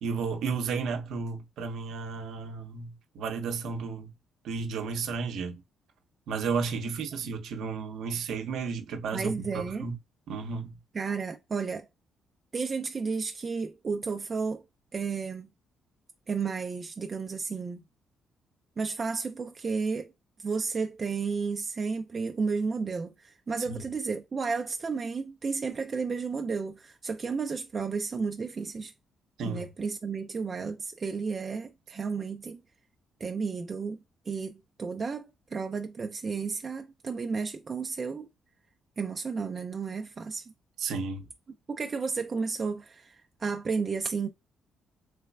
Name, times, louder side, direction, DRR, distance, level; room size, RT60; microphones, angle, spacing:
voice 1, 0.0-4.1 4.4-5.6 6.3-10.0 10.3-10.8 23.7-23.8 29.4-29.6 40.8-41.2, right 5 dB, 75° right, 0.7 m, -33 dB
voice 2, 9.1-9.9 10.9-11.9 12.5-14.6 14.9-15.5 16.3-17.8 18.8-20.1 20.4-28.9 29.4-32.6 33.2-34.0 34.3-38.3 39.0-40.4 41.7-44.3, right 5 dB, 40° right, 0.4 m, -32 dB
3.2 x 3.1 x 2.2 m
cardioid pair, 90°, 0 cm